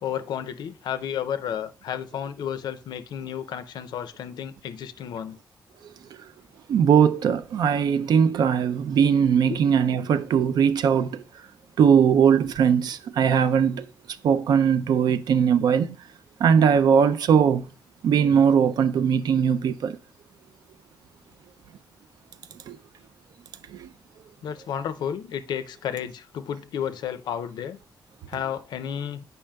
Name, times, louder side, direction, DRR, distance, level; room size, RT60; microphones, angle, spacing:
voice 1, 0.0-5.4 24.4-27.8 28.3-29.2, left 9 dB, 90° left, 0.4 m, -32 dB
voice 2, 6.7-11.2 11.8-13.9 14.2-16.0 16.4-17.7 18.0-20.0 22.7-22.8 23.7-23.9, right 7 dB, 75° right, 0.4 m, -20 dB
8.6 x 5.4 x 2.2 m
wide cardioid pair, 170°, 7 cm